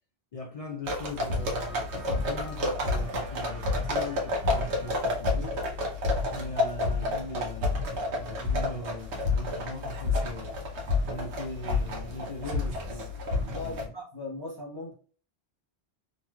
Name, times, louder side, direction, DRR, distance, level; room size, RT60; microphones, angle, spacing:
voice 1, 0.3-5.6 6.3-10.6 11.1-13.1 13.4-13.9, left 2 dB, 55° left, 0.4 m, -40 dB
sound 1, 0.9-13.9, left 2 dB, 75° right, 1.1 m, -30 dB
voice 2, 13.5-14.9, left 2 dB, 25° left, 0.8 m, -38 dB
3.1 x 2.9 x 2.2 m
omnidirectional pair, 1.2 m